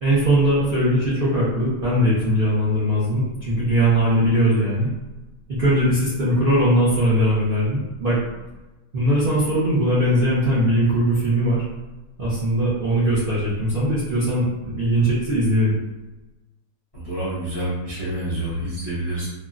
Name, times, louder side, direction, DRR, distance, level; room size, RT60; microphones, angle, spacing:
voice 1, 0.0-4.9 5.5-8.2 8.9-11.6 12.2-15.7, equal, 65° right, -8 dB, 0.5 m, -20 dB
voice 2, 16.9-19.3, right 1 dB, 40° left, -11 dB, 0.5 m, -28 dB
3.5 x 2.0 x 2.4 m, 1.1 s
omnidirectional pair, 1.9 m